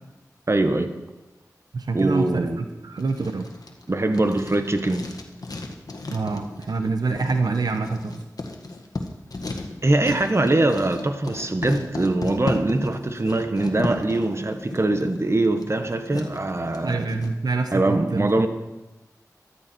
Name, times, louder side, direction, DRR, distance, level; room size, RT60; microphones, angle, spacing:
voice 1, 0.5-0.9 1.9-2.6 3.9-5.1 9.8-17.0 17.7-18.5, right 2 dB, 40° right, 8 dB, 1.3 m, -22 dB
voice 2, 1.7-3.5 6.1-8.1 16.8-18.5, right 3 dB, 80° right, 6 dB, 0.9 m, -26 dB
Writing, 3.0-17.3, left 2 dB, 65° left, 1.6 m, -35 dB
13.5 x 12.5 x 4.5 m, 1.1 s
cardioid pair, 45°, 7 cm